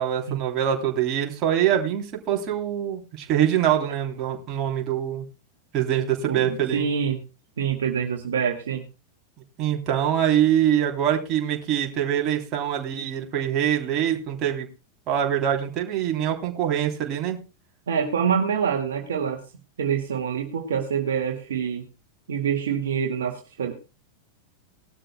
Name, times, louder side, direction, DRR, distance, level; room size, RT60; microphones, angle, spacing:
voice 1, 0.0-5.2 5.7-6.8 9.6-14.7 15.1-17.4, right 10 dB, 35° right, 2 dB, 3.3 m, -24 dB
voice 2, 6.3-7.2 7.6-8.8 17.9-19.4 19.8-21.8 22.3-23.7, right 7 dB, 65° right, 2 dB, 2.1 m, -26 dB
19.5 x 12.5 x 2.3 m, 0.31 s
figure-of-eight pair, 90°, 0 cm